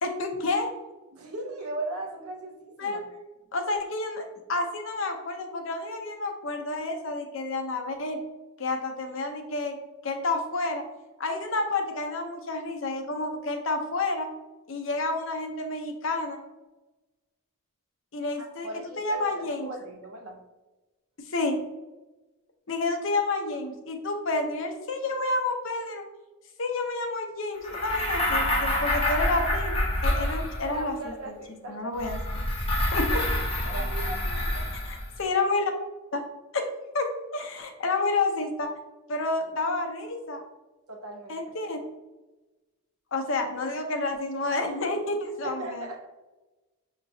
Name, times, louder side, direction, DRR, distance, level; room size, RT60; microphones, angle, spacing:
voice 1, 0.0-0.7 2.8-3.0 3.5-4.2 4.5-8.2 8.6-9.8 10.0-10.8 11.2-14.3 14.7-16.4 18.1-18.7 19.0-19.7 21.3-21.6 22.7-26.0 26.6-31.1 31.7-32.4 32.9-33.2 34.8-35.7 36.1-36.2 36.5-36.7 36.9-38.7 39.1-40.4 41.3-41.8 43.1-45.9, left 2 dB, 60° left, 5 dB, 0.7 m, -29 dB
voice 2, 1.1-3.0 18.4-20.4 30.7-31.9 33.6-34.7 40.9-41.5 45.4-46.1, right 2 dB, 80° right, 3 dB, 0.9 m, -38 dB
sound 1, 27.6-30.9 32.0-35.1, left 1 dB, 25° left, 0.8 m, -27 dB
6.6 x 2.9 x 2.7 m, 1.1 s
head